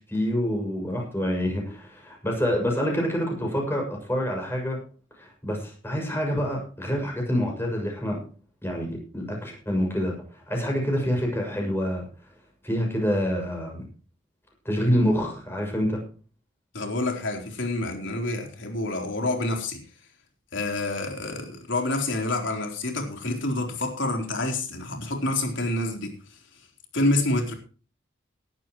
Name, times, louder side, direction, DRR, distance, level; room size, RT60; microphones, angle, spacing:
voice 1, 0.1-4.8 5.2-8.2 8.6-12.0 12.6-13.8 14.6-16.0, equal, 10° left, 6.6 m, -27 dB
voice 2, 16.7-19.8 20.5-26.1 26.9-27.5, left 2 dB, 75° left, 3.9 m, -27 dB
18.5 x 12.0 x 3.1 m
head